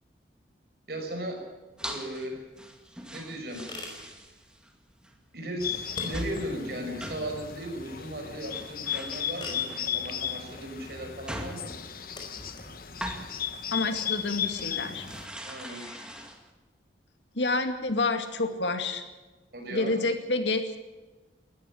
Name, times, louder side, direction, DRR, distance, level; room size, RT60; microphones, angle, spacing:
voice 1, 0.9-1.4 1.8-2.4 3.1-3.6 5.3-11.8 15.5-15.9 19.5-20.0, right 1 dB, 60° right, 3 dB, 5.8 m, -36 dB
sound 1, 1.8-2.3 2.6-4.7 5.0-5.1 6.1-6.5 6.8-7.4 8.2-8.3 8.5-10.1 10.8-13.3 13.9-14.0 14.4-16.5, equal, 5° right, 2.0 m, -41 dB
sound 2, 2.2-14.6, left 1 dB, 25° left, 5.0 m, -48 dB
Bird, 5.6-15.3, left 9 dB, 50° left, 1.3 m, -35 dB
voice 2, 13.7-15.1 15.6-16.1 17.4-19.0 19.7-20.8, left 3 dB, 80° left, 7 dB, 2.3 m, -29 dB
19.5 x 14.0 x 10.0 m, 1.2 s
head